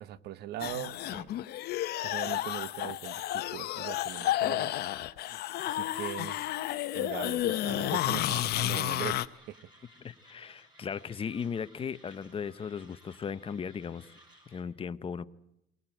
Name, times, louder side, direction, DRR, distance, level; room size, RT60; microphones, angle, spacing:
voice 1, 0.0-1.3 2.0-4.7 5.7-6.4 6.9-9.6, right 12 dB, 75° right, 0.8 m, -40 dB
sound 1, 0.6-9.3, left 14 dB, 70° left, 0.8 m, -31 dB
Mechanisms, 8.4-14.6, equal, 25° right, 7.0 m, -59 dB
voice 2, 10.0-14.2 14.5-15.2, left 6 dB, 35° left, 0.8 m, -37 dB
22.5 x 19.0 x 9.0 m
cardioid pair, 110°, 17 cm